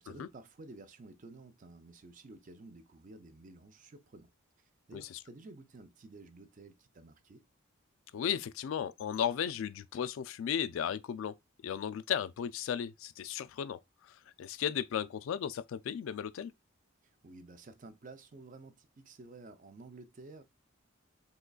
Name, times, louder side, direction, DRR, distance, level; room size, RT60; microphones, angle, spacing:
voice 1, 0.0-4.3 4.6-7.4 17.0-20.4, right 2 dB, 40° right, 0.4 m, -52 dB
voice 2, 8.1-11.3 11.6-16.5, left 8 dB, 70° left, 0.3 m, -35 dB
3.7 x 3.1 x 2.2 m
head